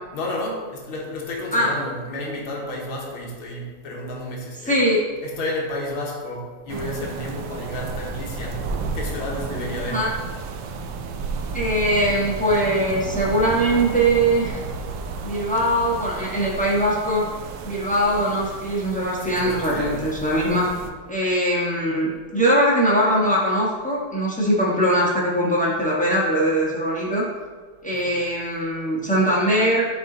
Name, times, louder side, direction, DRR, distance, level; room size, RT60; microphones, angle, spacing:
voice 1, 0.1-4.8 5.2-8.7 8.9-10.1 19.2-20.1 27.9-28.2, left 1 dB, 80° left, 0 dB, 1.9 m, -31 dB
voice 2, 4.7-5.0 9.9-10.1 11.5-14.6 15.2-17.3 17.6-20.7 21.1-27.2 27.8-29.9, right 1 dB, 10° left, -6 dB, 0.5 m, -21 dB
sound 1, 6.7-20.9, right 4 dB, 75° right, 1.2 m, -32 dB
8.5 x 3.3 x 3.8 m, 1.5 s
omnidirectional pair, 2.3 m